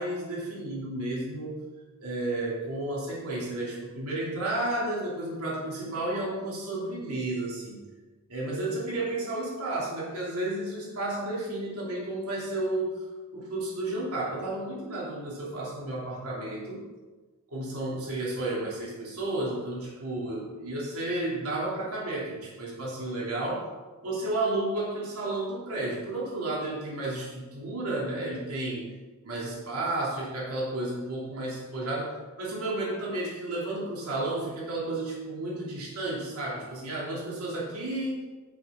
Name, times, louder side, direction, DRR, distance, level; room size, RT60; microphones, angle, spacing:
voice 1, 0.0-1.6 2.0-7.8 8.3-13.0 13.3-16.8 17.5-23.7 24.0-28.9 29.2-38.2, right 2 dB, 90° right, -5 dB, 3.0 m, -32 dB
10.5 x 7.4 x 3.7 m, 1.3 s
head